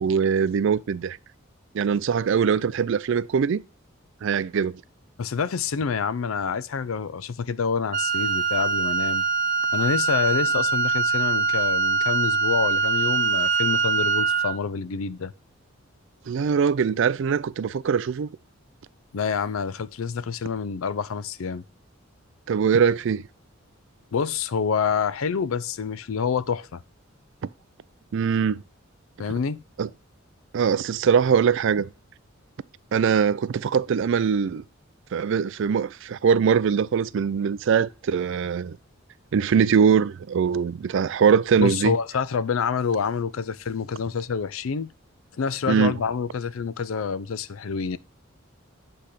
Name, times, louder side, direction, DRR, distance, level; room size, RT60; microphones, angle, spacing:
voice 1, 0.0-1.2 1.7-3.6 4.2-4.8 16.3-18.3 22.5-23.2 28.1-28.6 29.8-29.9 30.5-31.9 32.9-34.6 35.1-38.8 39.3-41.9 45.7-45.9, right 6 dB, 60° right, 0.4 m, -22 dB
voice 2, 5.2-9.2 9.7-15.3 19.1-21.6 24.1-26.8 29.2-29.6 41.6-44.9 45.4-48.0, left 6 dB, 80° left, 0.5 m, -27 dB
Wind instrument woodwind instrument, 7.9-14.6, right 4 dB, 40° right, 0.8 m, -23 dB
8.5 x 3.4 x 5.8 m
head